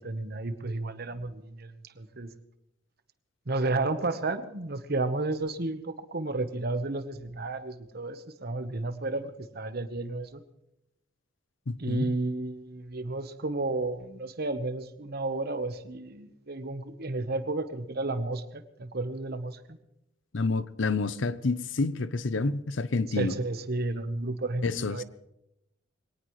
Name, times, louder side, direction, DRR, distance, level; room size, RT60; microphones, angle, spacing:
voice 1, 0.0-2.3 3.5-10.4 11.8-19.6 23.1-25.0, right 2 dB, 55° right, 1.1 m, -32 dB
voice 2, 11.7-12.1 20.3-23.3 24.6-25.0, left 3 dB, 75° left, 0.7 m, -29 dB
23.0 x 18.0 x 3.2 m
head